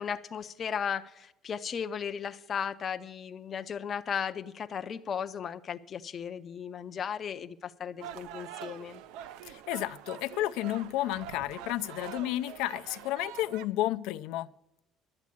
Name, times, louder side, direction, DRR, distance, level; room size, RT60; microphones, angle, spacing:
voice 1, 0.0-9.0, left 7 dB, 30° left, 9 dB, 0.5 m, -36 dB
sound 1, 8.0-13.6, right 10 dB, 90° right, 0.5 m, -45 dB
voice 2, 9.5-14.5, left 15 dB, 90° left, 11 dB, 0.5 m, -32 dB
11.5 x 8.3 x 8.4 m, 0.85 s
cardioid pair, 180°, 0 cm